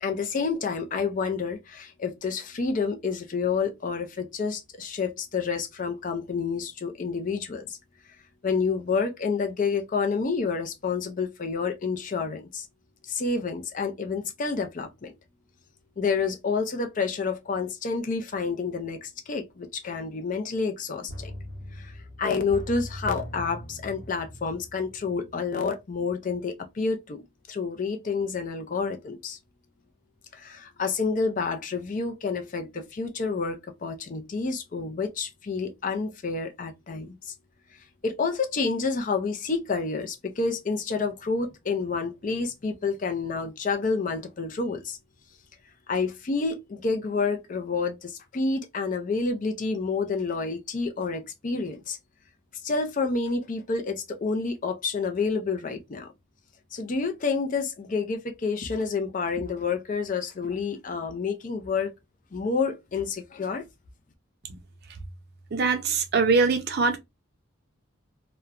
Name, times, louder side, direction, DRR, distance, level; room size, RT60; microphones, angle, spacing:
voice 1, 0.0-7.8 8.4-12.7 13.0-15.1 16.0-21.3 21.7-27.2 27.5-29.4 30.3-37.3 38.0-45.0 45.9-52.0 52.6-56.1 56.7-61.9 62.3-63.7, left 4 dB, 40° left, 0.4 m, -29 dB
sound 1, 21.1-25.8 26.1-26.2, equal, 70° left, 1.0 m, -40 dB
voice 2, 65.5-67.0, right 4 dB, 50° right, 0.5 m, -23 dB
2.9 x 2.2 x 2.4 m
head